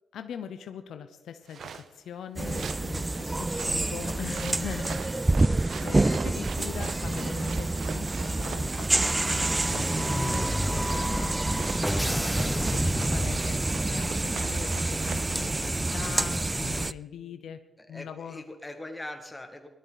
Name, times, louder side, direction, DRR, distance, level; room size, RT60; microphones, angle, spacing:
voice 1, 0.1-11.4 12.1-17.6 17.9-18.4, left 8 dB, 85° left, 9 dB, 0.8 m, -41 dB
sound 1, 1.5-1.9 2.4-2.9 3.5-11.2 11.5-11.8 12.1-15.3, right 6 dB, 75° right, 0.7 m, -42 dB
sound 2, 2.4-16.9, right 2 dB, 25° right, 0.4 m, -28 dB
sound 3, 8.9-13.9, equal, 5° right, 1.0 m, -31 dB
voice 2, 17.8-19.7, left 1 dB, 20° left, 6 dB, 2.1 m, -41 dB
18.0 x 13.0 x 4.1 m, 1.1 s
cardioid pair, 55°, 0 cm